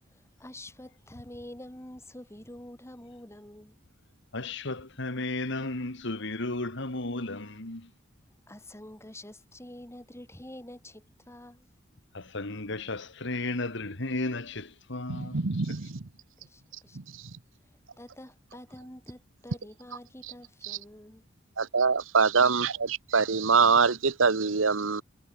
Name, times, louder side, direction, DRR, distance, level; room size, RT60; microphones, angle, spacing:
voice 1, 0.1-3.8 8.5-11.7 15.2-15.3 16.4-17.0 18.0-21.2, left 1 dB, 15° left, 4.4 m, -47 dB
voice 2, 4.3-7.9 12.1-15.4, left 2 dB, 65° left, 2.5 m, -34 dB
voice 3, 15.1-16.1 16.9-17.3 20.6-20.8 21.6-25.0, right 5 dB, 80° right, 1.1 m, -24 dB
head